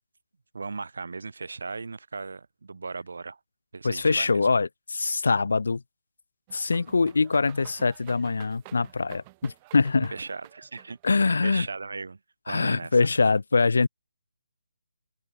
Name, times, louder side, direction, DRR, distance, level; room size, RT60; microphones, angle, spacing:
voice 1, 0.5-3.4 3.7-4.4 10.1-11.0 11.2-12.2 12.5-13.0, right 4 dB, 60° right, 7.1 m, -37 dB
voice 2, 3.8-5.8 6.5-10.1 11.0-11.7 12.5-13.9, left 4 dB, 60° left, 2.0 m, -23 dB
sound 1, 6.5-11.5, right 22 dB, 15° right, 1.8 m, -51 dB
open air
hypercardioid pair, 175°, 0 cm